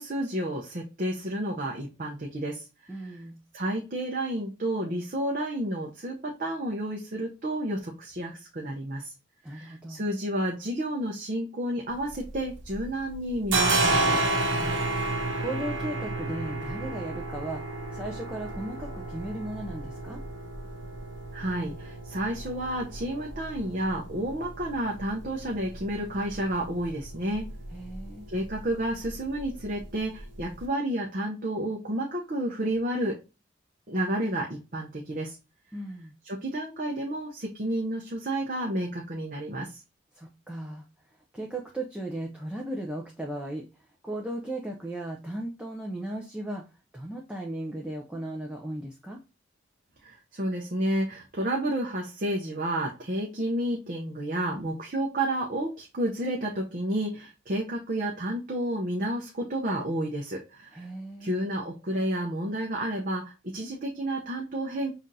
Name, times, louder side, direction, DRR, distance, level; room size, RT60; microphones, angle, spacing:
voice 1, 0.0-3.1 3.5-9.1 9.5-14.2 21.3-27.5 28.3-33.2 33.9-35.4 36.2-39.8 50.0-60.8 61.2-64.9, right 1 dB, 40° right, -1 dB, 0.7 m, -31 dB
voice 2, 2.9-3.4 9.4-10.0 14.4-14.8 15.4-17.6 17.9-20.2 27.7-28.3 35.7-36.2 40.2-40.9 41.3-43.7 44.0-46.6 46.9-49.2 60.7-61.3, right 1 dB, 5° right, 0 dB, 0.5 m, -36 dB
sound 1, 11.9-12.9 13.1-30.6, right 2 dB, 65° right, 1.0 m, -32 dB
5.6 x 2.5 x 2.7 m, 0.29 s
head